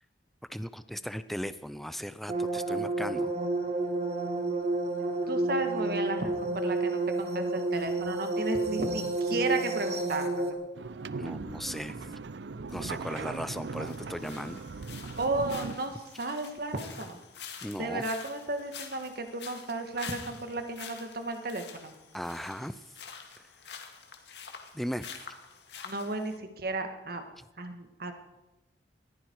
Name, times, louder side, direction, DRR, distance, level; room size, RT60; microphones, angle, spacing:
voice 1, 0.5-3.3 11.2-12.2 12.7-14.6 17.6-18.1 22.1-22.8 24.7-25.1 27.4-27.5, equal, ahead, 13 dB, 0.5 m, -37 dB
sound 1, 2.3-10.5, right 2 dB, 40° right, 1.9 m, -30 dB
voice 2, 5.3-10.6 15.2-17.2 17.8-21.9 25.8-27.2 27.6-28.1, right 2 dB, 60° right, 6 dB, 1.8 m, -34 dB
sound 2, 10.7-15.8, right 4 dB, 80° right, 0.5 m, -39 dB
sound 3, 12.7-26.4, left 6 dB, 70° left, 2.1 m, -47 dB
20.5 x 15.0 x 4.8 m, 1.0 s
head